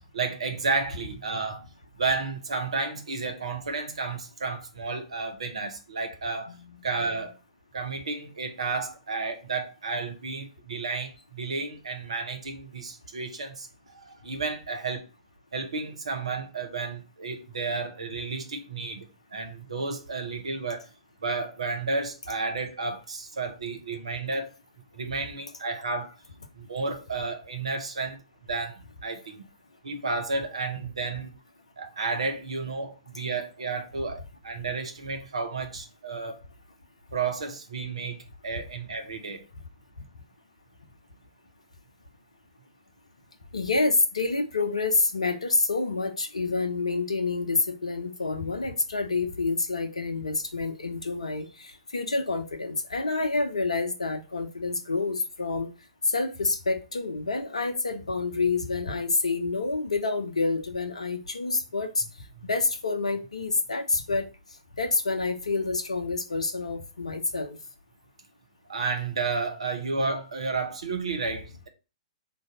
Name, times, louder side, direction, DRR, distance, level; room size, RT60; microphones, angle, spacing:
voice 1, 0.0-1.7 2.0-6.6 6.8-7.3 7.7-15.1 15.5-20.9 21.2-24.5 24.9-26.2 26.6-28.2 28.5-29.4 29.8-31.4 31.8-36.4 37.1-39.4 62.4-62.5 68.7-71.7, right 4 dB, 70° right, 0.8 m, -32 dB
voice 2, 6.5-7.3 43.5-55.7 56.0-62.0 62.4-64.3 64.8-67.6, left 3 dB, 75° left, 0.5 m, -28 dB
3.8 x 2.6 x 3.8 m
figure-of-eight pair, 110°, 3 cm